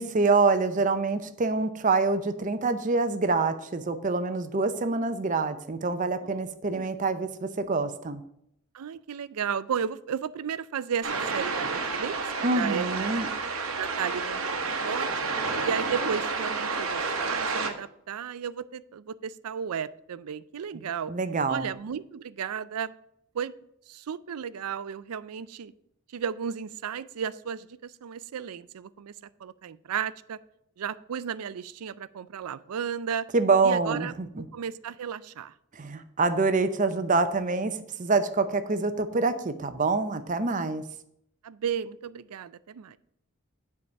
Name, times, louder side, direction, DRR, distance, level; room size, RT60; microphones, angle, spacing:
voice 1, 0.0-8.2 12.4-13.3 20.7-20.8 21.1-21.7 33.3-34.4 35.7-40.8, right 3 dB, 35° right, 10 dB, 0.6 m, -26 dB
voice 2, 8.7-13.2 13.8-15.2 15.6-21.1 21.5-22.9 23.3-23.5 23.9-25.7 26.1-29.1 29.4-30.4 30.8-33.3 33.6-34.1 34.5-35.5 41.4-43.0, right 7 dB, 90° right, 17 dB, 0.4 m, -34 dB
sound 1, 11.0-17.7, right 4 dB, 65° right, 1.1 m, -30 dB
7.7 x 4.8 x 7.0 m, 0.74 s
head